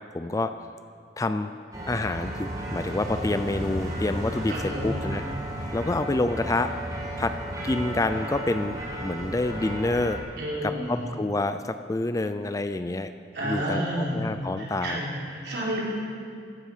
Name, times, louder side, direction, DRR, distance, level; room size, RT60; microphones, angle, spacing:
voice 1, 0.1-0.5 1.2-1.5 1.9-5.2 5.7-6.7 7.2-7.3 7.6-10.2 10.6-13.1 13.4-15.0, left 2 dB, 20° left, 10 dB, 0.4 m, -27 dB
sound 1, 1.7-10.2, right 1 dB, 20° right, 1.8 m, -33 dB
voice 2, 4.5-5.0 10.4-11.1 13.3-14.3 14.6-15.8, right 1 dB, 65° right, -5 dB, 4.0 m, -30 dB
16.0 x 12.5 x 5.0 m, 2.4 s
head